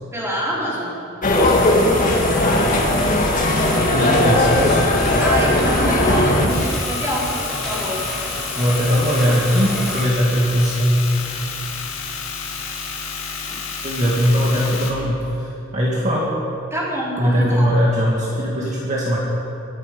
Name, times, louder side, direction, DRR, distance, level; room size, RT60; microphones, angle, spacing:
voice 1, 0.1-0.9 5.2-8.0 13.4-13.6 16.7-17.6, right 1 dB, 15° right, -6 dB, 3.7 m, -26 dB
sound 1, 1.2-6.5, left 1 dB, 40° left, 1.7 m, -17 dB
sound 2, 1.3-10.1, left 1 dB, 5° left, 4.4 m, -30 dB
voice 2, 3.9-4.9 6.1-6.5 8.5-11.0 13.8-16.3 17.2-19.2, equal, 35° right, -5 dB, 2.0 m, -20 dB
sound 3, 6.5-14.9, left 5 dB, 75° left, 2.1 m, -30 dB
23.0 x 8.8 x 5.4 m, 2.8 s
head